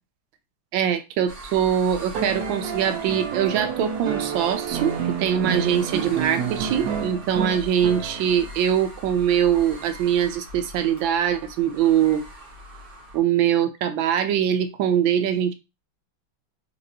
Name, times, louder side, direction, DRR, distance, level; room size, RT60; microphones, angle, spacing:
voice 1, 0.7-12.2 13.1-15.5, right 9 dB, 85° right, 1.3 m, -22 dB
sound 1, 1.3-13.2, right 1 dB, 25° right, 1.0 m, -42 dB
sound 2, 2.1-8.6 10.1-10.2, right 7 dB, 65° right, 1.1 m, -29 dB
4.2 x 3.1 x 2.7 m
omnidirectional pair, 2.1 m